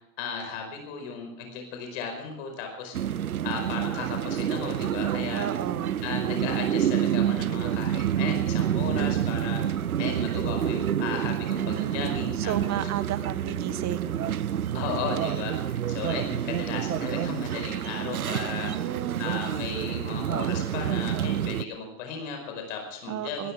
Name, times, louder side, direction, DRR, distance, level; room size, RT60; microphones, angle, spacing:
voice 1, 0.0-5.5 6.0-12.9 14.7-18.9 19.2-23.5, left 5 dB, 60° left, 4 dB, 5.2 m, -36 dB
sound 1, 2.9-21.7, right 10 dB, 85° right, 0.6 m, -28 dB
voice 2, 5.3-6.0 11.7-14.2 18.7-19.3 23.1-23.5, right 11 dB, 40° right, 14 dB, 1.5 m, -33 dB
20.5 x 18.5 x 3.6 m, 0.82 s
figure-of-eight pair, 70°, 42 cm